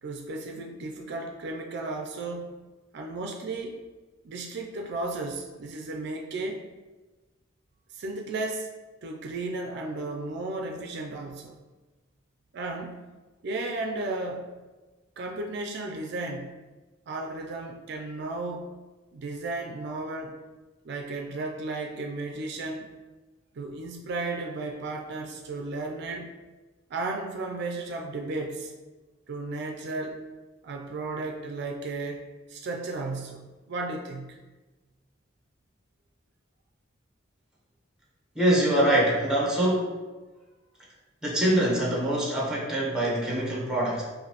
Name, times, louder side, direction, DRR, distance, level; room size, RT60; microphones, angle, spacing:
voice 1, 0.0-2.5 2.9-3.8 4.2-6.6 7.9-8.7 9.0-11.5 12.5-13.0 13.4-14.5 15.2-16.6 17.1-18.7 19.1-20.4 20.8-22.9 23.5-26.3 26.9-28.7 29.3-30.2 30.6-32.2 32.5-34.4, right 2 dB, 60° right, 2 dB, 0.4 m, -34 dB
voice 2, 38.3-40.0 41.2-44.0, right 1 dB, 5° right, -4 dB, 0.9 m, -24 dB
4.9 x 2.6 x 2.9 m, 1.2 s
head